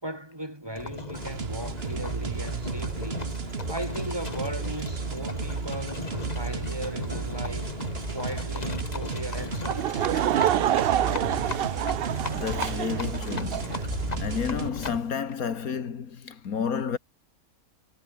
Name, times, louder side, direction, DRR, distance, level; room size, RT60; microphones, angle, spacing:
voice 1, 0.0-3.3 3.7-7.7 8.1-10.0, right 1 dB, 15° right, 4.8 m, -37 dB
Livestock farm animals working animals, 0.7-15.1, left 3 dB, 25° left, 1.9 m, -37 dB
sound 1, 1.1-14.7, right 5 dB, 45° right, 1.7 m, -34 dB
Laughter / Crowd, 9.6-13.8, right 11 dB, 70° right, 0.5 m, -27 dB
voice 2, 12.3-13.9 14.2-17.0, left 6 dB, 70° left, 2.1 m, -31 dB
omnidirectional pair, 1.6 m